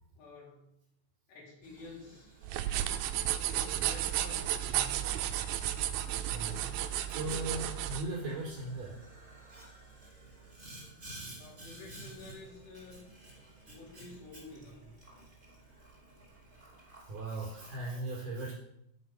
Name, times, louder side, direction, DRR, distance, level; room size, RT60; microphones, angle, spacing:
voice 1, 0.2-0.7 1.3-2.3 3.1-5.6 11.4-13.1 13.7-14.9, left 2 dB, 75° left, -3 dB, 5.6 m, -50 dB
Boiling, 1.6-17.9, right 2 dB, 15° right, 1.9 m, -53 dB
sound 1, 2.4-8.0, right 12 dB, 90° right, 2.1 m, -33 dB
voice 2, 6.3-6.6 7.1-9.0 15.7-15.9 16.5-18.5, right 2 dB, 50° right, -4 dB, 6.1 m, -39 dB
10.0 x 9.4 x 5.6 m, 0.78 s
omnidirectional pair, 4.9 m